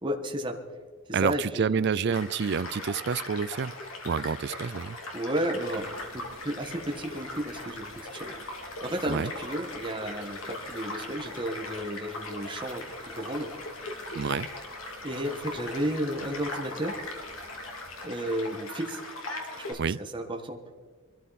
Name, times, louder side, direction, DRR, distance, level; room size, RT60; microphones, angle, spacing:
voice 1, 0.0-0.6 1.1-1.8 5.1-8.3 8.8-13.5 15.0-17.0 18.0-19.0 19.6-20.7, right 1 dB, 25° right, 1.4 m, -33 dB
voice 2, 1.1-3.7 4.0-5.0 9.1-9.3 14.1-14.5 19.8-20.0, right 6 dB, 55° right, 0.4 m, -28 dB
Child speech kid speaking / Stream / Car passing by, 2.1-19.7, left 2 dB, 80° left, 2.6 m, -39 dB
sound 1, 5.6-18.1, right 2 dB, 90° right, 2.5 m, -55 dB
22.0 x 13.5 x 4.2 m
head